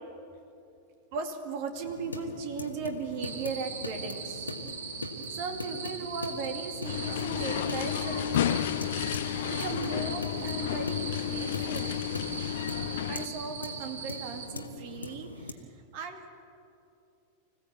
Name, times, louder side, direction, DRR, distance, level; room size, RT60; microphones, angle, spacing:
voice 1, 1.1-4.5 5.3-8.6 9.5-12.0 13.1-15.6 15.9-16.3, right 5 dB, 45° right, 5 dB, 2.2 m, -37 dB
sound 1, 1.8-15.5, left 2 dB, 80° left, 1.5 m, -41 dB
sound 2, 3.2-14.5, right 5 dB, 65° right, 2.2 m, -41 dB
sound 3, 6.8-13.3, left 12 dB, 55° left, 0.8 m, -32 dB
25.5 x 16.0 x 8.3 m, 2.6 s
figure-of-eight pair, 90°, 0 cm